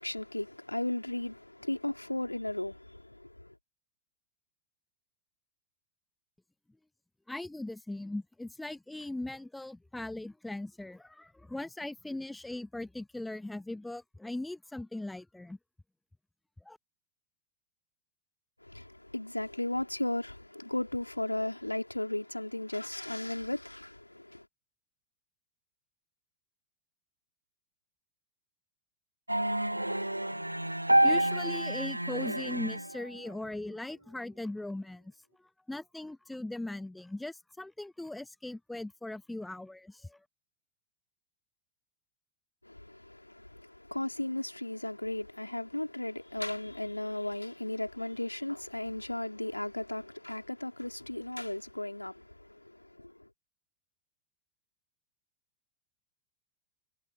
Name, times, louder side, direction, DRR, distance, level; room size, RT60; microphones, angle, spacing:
voice 1, 0.0-3.6 18.6-24.5 42.6-53.3, left 1 dB, 85° left, 4.0 m, -36 dB
voice 2, 7.3-15.6 16.6-16.8 31.0-35.1 35.7-40.2, left 2 dB, 5° left, 1.2 m, -39 dB
sound 1, 29.3-33.2, right 1 dB, 85° right, 0.5 m, -28 dB
figure-of-eight pair, 90°, 0 cm